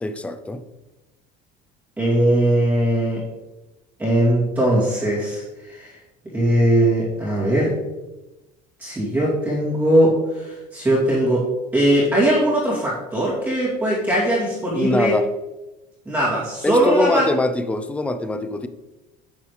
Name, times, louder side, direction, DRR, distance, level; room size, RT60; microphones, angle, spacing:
voice 1, 0.0-0.6 14.7-15.2 16.6-18.7, left 2 dB, 5° left, 0.4 m, -23 dB
voice 2, 2.0-3.2 4.0-6.0 6.3-7.7 8.8-15.2 16.0-17.3, right 1 dB, 10° right, 2.6 m, -20 dB
10.0 x 8.1 x 3.2 m
cardioid pair, 170°, 18 cm